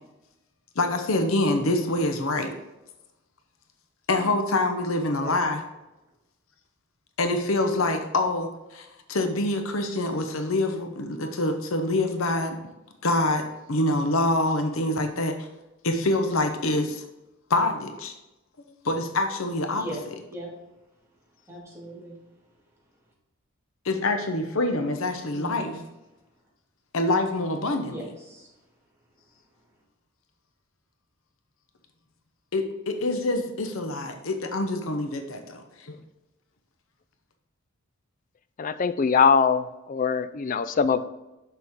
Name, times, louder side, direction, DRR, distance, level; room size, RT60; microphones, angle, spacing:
voice 1, 0.8-2.5 4.1-5.6 7.2-12.6 13.0-15.5 15.8-17.0 17.5-18.1 18.8-19.8 23.8-25.8 26.9-28.0 32.5-35.9, left 2 dB, 70° left, 6 dB, 0.8 m, -26 dB
voice 2, 19.7-20.1 20.3-20.5 21.5-22.1 25.3-25.8 27.9-28.5, right 1 dB, 15° right, -5 dB, 2.2 m, -38 dB
voice 3, 38.6-39.6 39.9-41.0, left 6 dB, 35° left, 13 dB, 0.3 m, -22 dB
6.8 x 6.3 x 3.6 m, 0.99 s
head